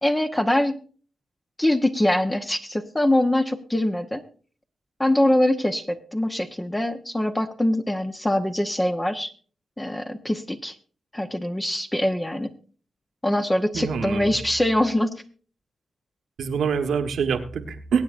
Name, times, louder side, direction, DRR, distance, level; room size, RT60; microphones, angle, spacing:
voice 1, 0.0-0.8 1.6-4.2 5.0-9.3 9.8-10.7 11.1-12.5 13.2-15.1, left 1 dB, 15° left, 5 dB, 1.0 m, -23 dB
voice 2, 13.7-14.4 16.4-18.0, right 6 dB, 85° right, 6 dB, 1.4 m, -25 dB
23.0 x 8.7 x 2.5 m, 0.41 s
cardioid pair, 65°, 0 cm